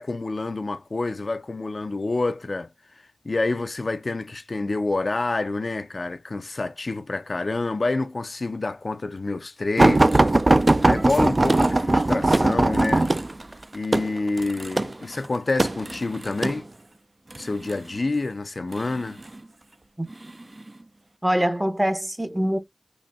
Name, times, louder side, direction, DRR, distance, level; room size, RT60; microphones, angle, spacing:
voice 1, 0.0-2.7 3.2-10.2 10.8-13.1 13.7-16.7 17.4-19.2, left 3 dB, 75° left, 0.4 m, -28 dB
sound 1, 9.8-16.6 17.3-17.8 18.7-19.4 20.1-20.3 20.7-20.8, right 2 dB, 50° right, 0.3 m, -20 dB
voice 2, 21.2-22.6, equal, 15° right, 0.6 m, -23 dB
4.0 x 2.7 x 2.2 m
wide cardioid pair, 40°, 0 cm